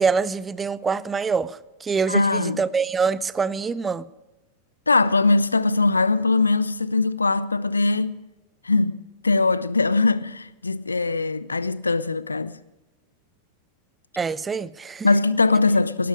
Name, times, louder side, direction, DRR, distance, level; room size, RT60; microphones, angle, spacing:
voice 1, 0.0-4.1 14.2-15.1, right 5 dB, 15° right, 0.5 m, -25 dB
voice 2, 2.1-2.6 4.9-8.2 8.6-9.0 9.2-12.6 15.0-16.1, left 3 dB, 80° left, 0.5 m, -21 dB
19.0 x 12.0 x 4.8 m
figure-of-eight pair, 90°, 0 cm